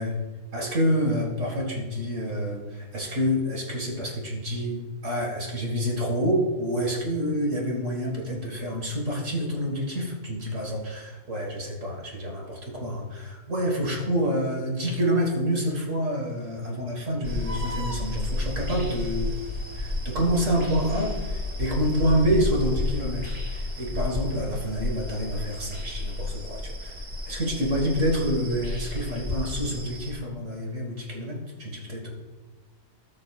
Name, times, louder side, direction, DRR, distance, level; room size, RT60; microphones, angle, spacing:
voice 1, 0.5-19.3 19.7-27.0 27.3-32.1, equal, 55° right, -1 dB, 2.2 m, -27 dB
sound 1, 17.2-30.1, left 2 dB, 25° right, 1.8 m, -32 dB
18.5 x 6.5 x 2.5 m, 1.3 s
omnidirectional pair, 1.6 m